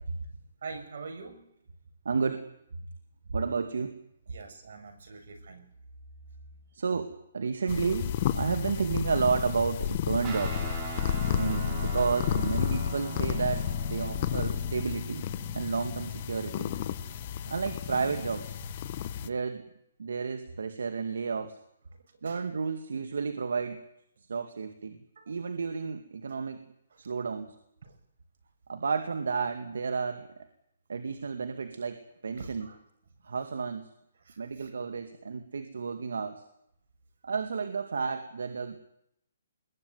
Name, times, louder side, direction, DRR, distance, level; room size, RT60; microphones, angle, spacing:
voice 1, 0.6-1.5 4.3-5.7 6.4-6.5 22.2-22.5 25.2-25.4 26.3-26.4 26.9-27.0 27.8-28.0 32.3-32.8 34.2-34.7, right 4 dB, 65° right, 6 dB, 7.2 m, -45 dB
voice 2, 2.0-2.4 3.3-3.9 6.7-10.6 11.3-15.3 15.5-16.7 17.5-18.6 19.2-19.6 20.0-21.5 22.2-23.8 24.3-25.0 25.3-26.7 27.0-27.6 28.7-30.3 30.9-32.7 33.2-33.9 34.4-36.4 37.2-38.8, right 5 dB, 85° right, 7 dB, 2.3 m, -31 dB
sound 1, 7.7-19.3, left 10 dB, 35° left, 1.2 m, -32 dB
Guitar, 10.2-19.0, right 3 dB, 25° right, 6.2 m, -42 dB
24.0 x 21.5 x 9.6 m, 0.76 s
hypercardioid pair, 160°, 0 cm